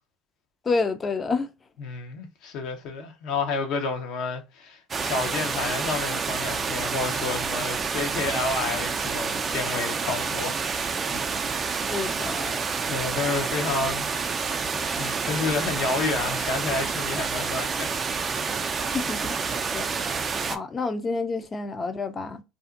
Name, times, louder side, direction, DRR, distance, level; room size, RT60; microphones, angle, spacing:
voice 1, 0.7-1.5 11.9-12.6 18.9-19.3 19.7-19.9 20.5-22.4, left 4 dB, 30° left, 0.5 m, -28 dB
voice 2, 1.8-10.6 12.9-14.1 14.4-18.0, left 4 dB, 60° left, 0.8 m, -30 dB
sound 1, 4.9-20.6, right 5 dB, 30° right, 0.4 m, -28 dB
2.6 x 2.4 x 2.4 m
hypercardioid pair, 75°, 0 cm